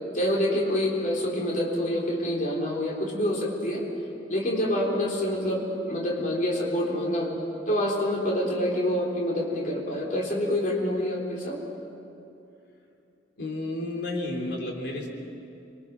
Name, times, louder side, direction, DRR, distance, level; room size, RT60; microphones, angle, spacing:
voice 1, 0.1-3.8 4.3-7.3 7.7-11.6, left 1 dB, 45° left, -3 dB, 4.0 m, -27 dB
voice 2, 13.4-15.1, left 2 dB, 65° left, 0 dB, 4.0 m, -31 dB
26.5 x 23.5 x 6.2 m, 2.7 s
head